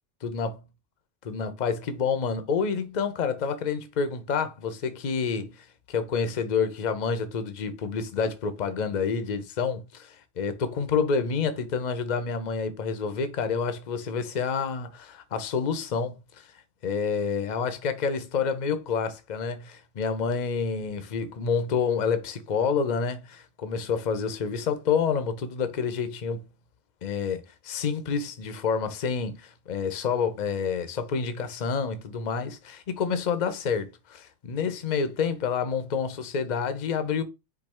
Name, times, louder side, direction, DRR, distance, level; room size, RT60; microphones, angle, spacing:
voice 1, 0.2-0.5 1.2-5.5 5.9-16.5 16.8-26.5 27.0-37.2, left 6 dB, 45° left, 0.7 m, -28 dB
4.6 x 2.7 x 4.2 m
omnidirectional pair, 1.2 m